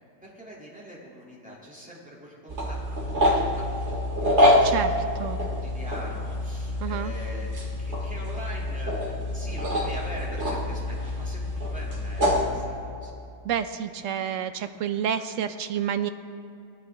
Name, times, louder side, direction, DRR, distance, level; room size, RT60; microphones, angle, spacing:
voice 1, 0.2-7.5 7.8-9.0 9.3-13.1, equal, 5° right, -6 dB, 3.2 m, -43 dB
sound 1, 2.5-12.5, left 1 dB, 40° right, 2.3 m, -26 dB
voice 2, 4.6-5.4 6.8-7.1 13.4-16.1, right 8 dB, 70° right, 10 dB, 0.7 m, -29 dB
19.5 x 11.5 x 3.8 m, 2.6 s
omnidirectional pair, 1.9 m